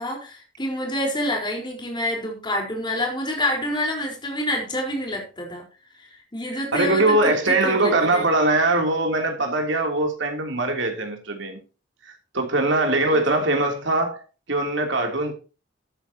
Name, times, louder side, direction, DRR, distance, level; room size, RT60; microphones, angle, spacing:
voice 1, 0.0-5.6 6.3-7.2 7.5-8.3 13.1-13.2, left 1 dB, 25° left, 4.5 m, -27 dB
voice 2, 6.7-11.6 12.3-14.2 14.5-15.3, right 2 dB, 65° right, 3.2 m, -21 dB
13.5 x 9.8 x 3.0 m
head